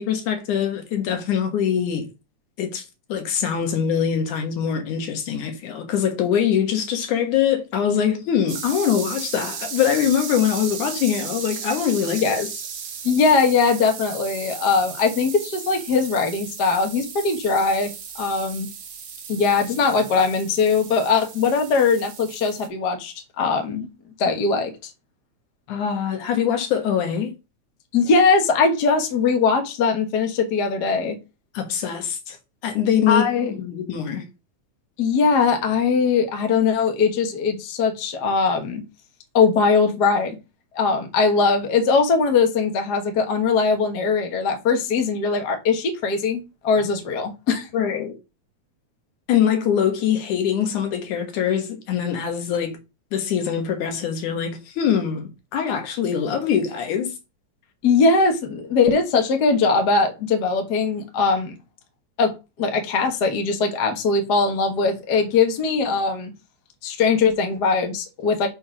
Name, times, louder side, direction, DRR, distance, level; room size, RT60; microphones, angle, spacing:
voice 1, 0.0-2.1 2.6-2.8 3.1-12.4 25.7-27.3 31.5-32.4 32.6-33.3 33.6-34.3 47.7-48.1 49.3-52.8 53.1-57.1, left 8 dB, 80° left, 2.9 m, -23 dB
sound 1, 8.5-22.7, right 7 dB, 65° right, 1.0 m, -36 dB
voice 2, 13.0-17.9 18.1-18.7 19.3-23.9 24.2-24.9 27.9-31.2 33.1-33.5 35.0-38.8 39.3-40.4 40.7-47.7 57.8-61.6 62.2-66.3 66.8-68.5, left 4 dB, 50° left, 1.3 m, -20 dB
5.5 x 4.3 x 6.0 m
omnidirectional pair, 3.5 m